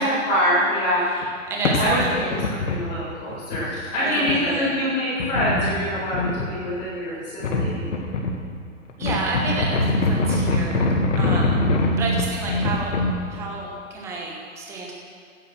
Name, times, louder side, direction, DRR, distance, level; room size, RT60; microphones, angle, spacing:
voice 1, 0.0-1.1 1.7-7.8, equal, 15° left, -14 dB, 4.4 m, -24 dB
voice 2, 1.1-2.3 3.9-4.8 9.0-10.9 11.2-14.9, right 3 dB, 5° right, -2 dB, 1.1 m, -30 dB
sound 1, 1.2-1.3 1.6-2.9 3.3-3.7 4.3-4.4 5.2-6.5 7.4-8.4 8.9-13.2, left 2 dB, 65° left, 2.1 m, -23 dB
16.0 x 9.9 x 6.4 m, 2.1 s
hypercardioid pair, 170°, 39 cm